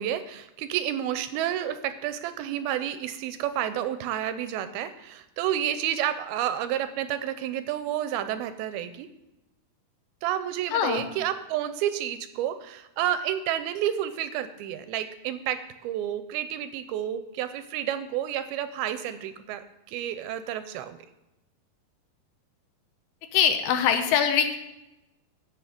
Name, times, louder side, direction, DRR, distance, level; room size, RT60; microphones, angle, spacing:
voice 1, 0.0-9.1 10.2-21.0, right 11 dB, 80° right, 11 dB, 2.3 m, -30 dB
voice 2, 10.7-11.1 23.3-24.6, left 8 dB, 85° left, 6 dB, 3.0 m, -23 dB
16.0 x 5.8 x 5.0 m, 0.93 s
omnidirectional pair, 4.7 m